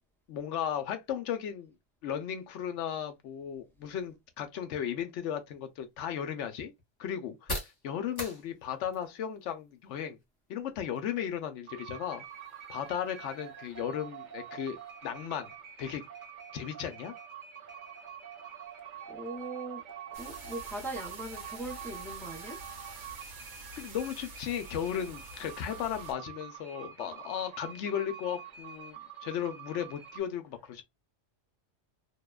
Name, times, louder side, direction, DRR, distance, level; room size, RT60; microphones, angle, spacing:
voice 1, 0.3-1.7 2.0-6.7 7.0-7.5 7.8-10.2 10.5-12.2 12.7-15.5 15.8-16.0 16.5-17.1 23.8-30.8, left 9 dB, 70° left, 0.8 m, -35 dB
sound 1, 5.4-23.0, left 1 dB, 20° left, 0.8 m, -49 dB
sound 2, 11.7-30.2, right 9 dB, 45° right, 0.7 m, -46 dB
voice 2, 19.1-19.8 20.1-22.6, right 2 dB, 5° left, 0.4 m, -40 dB
sound 3, 20.1-26.1, right 2 dB, 80° right, 1.2 m, -48 dB
2.7 x 2.1 x 2.2 m
omnidirectional pair, 1.3 m